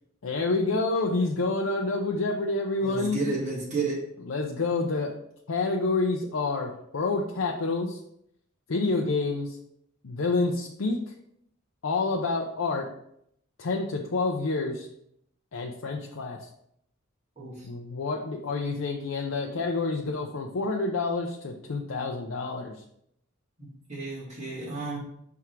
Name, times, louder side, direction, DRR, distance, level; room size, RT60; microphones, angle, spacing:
voice 1, 0.2-3.2 4.3-5.2 5.5-8.0 8.7-9.6 10.0-11.0 11.8-12.9 13.6-14.9 15.5-16.4 17.6-22.7, left 3 dB, 80° left, 0 dB, 0.6 m, -28 dB
voice 2, 2.8-4.0 17.4-17.7 23.6-25.0, right 3 dB, 35° right, -8 dB, 2.3 m, -32 dB
5.8 x 3.6 x 4.5 m, 0.73 s
head